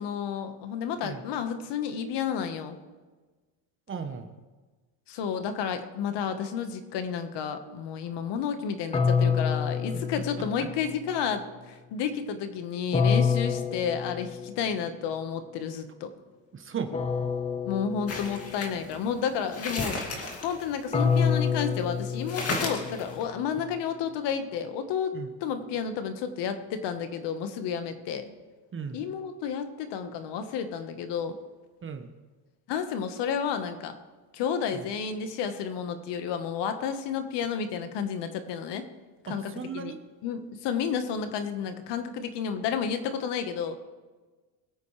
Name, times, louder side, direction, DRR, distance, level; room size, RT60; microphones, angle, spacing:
voice 1, 0.0-2.8 5.1-16.1 17.6-20.1 20.4-28.3 28.9-31.4 32.7-34.0 34.3-38.9 39.2-39.9 40.2-43.8, left 7 dB, 60° left, 8 dB, 1.5 m, -31 dB
voice 2, 3.9-4.3 10.4-10.7 13.5-13.6 16.5-16.9 25.1-25.3 28.7-29.0 31.8-32.1 34.7-34.8 39.2-40.0, right 6 dB, 25° right, 7 dB, 1.2 m, -36 dB
sound 1, 8.9-11.0 12.9-14.8 16.9-18.8 20.9-23.1, left 6 dB, 15° left, 0.8 m, -27 dB
sound 2, 18.1-21.6 21.9-22.0 22.3-23.2, left 2 dB, 30° left, 2.5 m, -34 dB
22.5 x 8.4 x 3.3 m, 1.3 s
cardioid pair, 125°, 47 cm